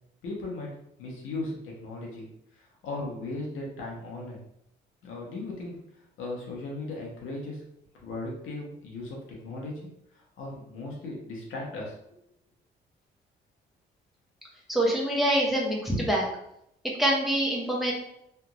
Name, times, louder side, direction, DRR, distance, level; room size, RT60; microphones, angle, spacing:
voice 1, 0.2-0.7 1.0-2.2 2.5-4.4 5.0-5.8 6.2-7.6 7.9-9.2 9.4-12.2, left 2 dB, 80° left, -3 dB, 1.1 m, -37 dB
voice 2, 14.7-16.3 17.0-17.9, right 1 dB, ahead, -3 dB, 1.0 m, -25 dB
3.4 x 2.4 x 3.0 m, 0.77 s
cardioid pair, 90°, 20 cm